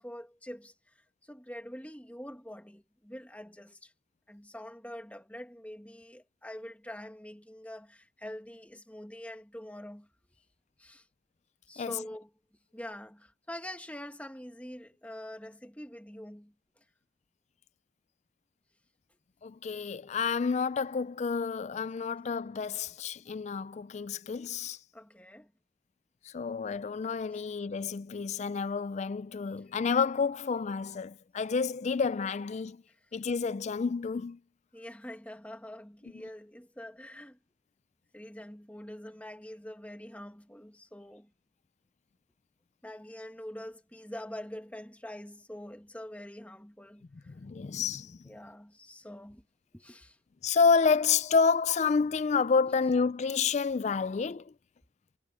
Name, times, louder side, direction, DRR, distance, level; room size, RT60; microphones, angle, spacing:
voice 1, 0.0-3.9 4.3-10.1 10.8-11.1 11.7-12.3 12.7-16.8 24.9-25.5 27.3-27.4 34.7-37.4 38.1-41.3 42.8-47.3 48.3-49.4 49.7-50.2 52.7-52.8, left 1 dB, 5° left, 1.7 m, -45 dB
voice 2, 19.4-24.8 26.2-32.8 33.1-34.4 47.3-48.2 50.4-54.5, left 5 dB, 35° left, 0.3 m, -29 dB
head